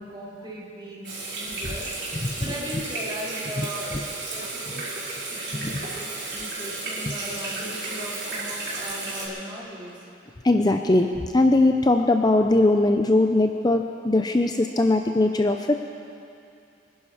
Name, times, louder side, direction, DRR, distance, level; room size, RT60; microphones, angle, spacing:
voice 1, 0.0-1.9 2.4-5.8 6.3-9.9, equal, 25° right, -6 dB, 3.4 m, -38 dB
Water tap faucet / Sink (filling or washing), 1.0-9.3, right 2 dB, 65° right, 4.9 m, -33 dB
voice 2, 2.1-2.5 3.6-3.7 3.9-4.0 5.6-5.8 7.1-7.2 10.4-15.9, left 2 dB, 20° left, 5 dB, 0.5 m, -21 dB
24.5 x 11.0 x 4.9 m, 2.6 s
head